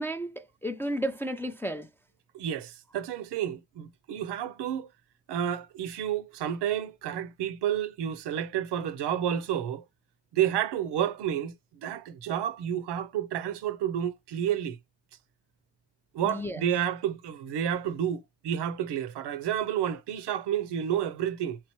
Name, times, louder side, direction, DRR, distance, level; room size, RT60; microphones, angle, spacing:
voice 1, 0.0-1.9 16.2-16.6, equal, 5° left, 0.4 m, -33 dB
voice 2, 2.3-4.9 5.3-9.8 10.3-11.5 11.8-14.8 16.1-21.6, right 10 dB, 75° right, 0.6 m, -30 dB
3.5 x 3.2 x 3.0 m
cardioid pair, 90°, 42 cm